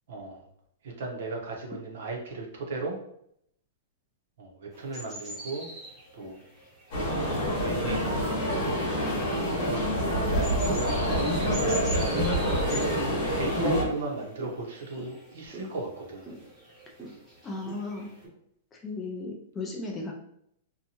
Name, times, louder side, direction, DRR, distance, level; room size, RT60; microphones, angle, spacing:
voice 1, 0.1-0.5 0.8-3.0 4.4-5.7 6.1-6.4 7.6-8.8 9.6-12.3 13.4-16.3, right 3 dB, 60° right, 1 dB, 0.7 m, -35 dB
sound 1, 4.7-18.3, right 1 dB, 5° right, 0.8 m, -44 dB
sound 2, 6.9-13.8, equal, 30° left, 0.9 m, -27 dB
voice 2, 17.4-18.1 18.7-20.1, left 3 dB, 10° left, 0 dB, 0.3 m, -35 dB
2.7 x 2.2 x 2.8 m, 0.72 s
supercardioid pair, 180°, 0 cm